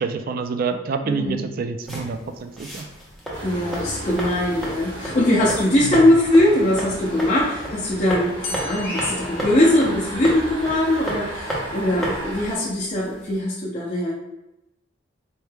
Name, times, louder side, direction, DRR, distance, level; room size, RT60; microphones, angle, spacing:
voice 1, 0.0-2.8 5.8-6.0, right 5 dB, 50° right, 8 dB, 0.3 m, -27 dB
voice 2, 1.0-1.4 3.4-14.1, left 1 dB, 35° left, -8 dB, 0.6 m, -21 dB
sound 1, 1.8-13.4, right 1 dB, ahead, 0.8 m, -34 dB
sound 2, 3.3-12.5, right 1 dB, 80° right, 1.4 m, -35 dB
sound 3, 8.4-10.3, left 3 dB, 70° left, 0.7 m, -36 dB
4.4 x 3.3 x 2.2 m, 0.94 s
head